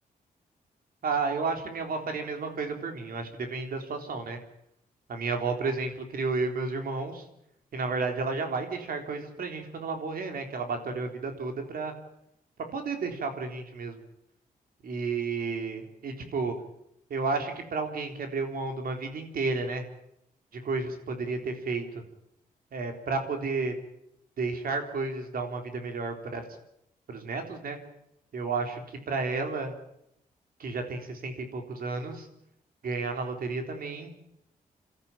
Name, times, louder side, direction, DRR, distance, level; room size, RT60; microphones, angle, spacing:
voice 1, 1.0-4.4 5.1-7.3 7.7-11.9 12.7-14.0 14.8-16.5 17.1-19.8 20.5-22.0 22.7-23.7 24.4-26.5 27.1-27.8 28.3-29.7 30.6-32.3 32.8-34.1, right 4 dB, 75° right, 5 dB, 3.8 m, -32 dB
28.5 x 13.0 x 8.9 m, 0.77 s
wide cardioid pair, 110°, 15 cm